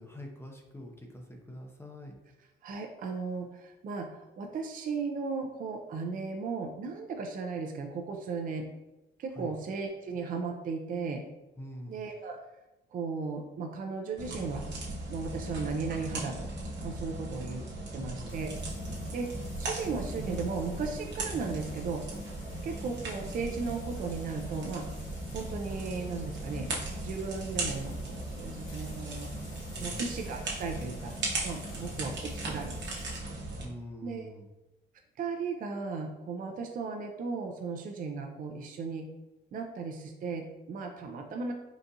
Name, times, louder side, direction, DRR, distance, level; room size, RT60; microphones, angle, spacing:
voice 1, 0.0-2.2 9.3-9.6 11.6-12.0 17.9-18.3 29.8-30.1 31.7-32.2 33.6-34.5, left 1 dB, 10° left, 1 dB, 0.5 m, -45 dB
voice 2, 2.6-8.7 9.2-11.2 11.9-12.4 12.9-14.6 15.1-16.5 16.8-18.5 19.1-19.3 19.6-22.0 22.6-24.9 25.3-26.7 27.0-29.3 29.8-31.1 31.4-32.7 34.0-34.3 35.2-39.1 39.5-41.5, right 4 dB, 45° right, 3 dB, 0.4 m, -36 dB
sound 1, 14.2-33.7, right 2 dB, 65° right, 0.9 m, -38 dB
Frying (food), 18.3-33.2, left 1 dB, 80° left, 0.7 m, -50 dB
3.8 x 2.4 x 2.7 m, 1.0 s
cardioid pair, 90°, 20 cm